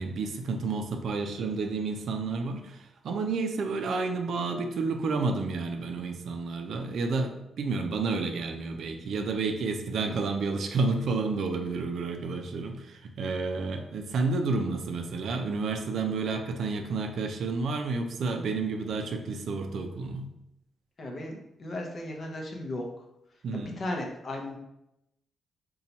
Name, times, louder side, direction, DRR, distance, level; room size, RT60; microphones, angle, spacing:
voice 1, 0.0-20.3 23.4-23.8, right 4 dB, 65° right, 5 dB, 0.4 m, -30 dB
voice 2, 21.0-22.9 23.5-24.6, left 1 dB, 40° left, 1 dB, 0.6 m, -36 dB
2.8 x 2.2 x 4.0 m, 0.85 s
cardioid pair, 135°, 0 cm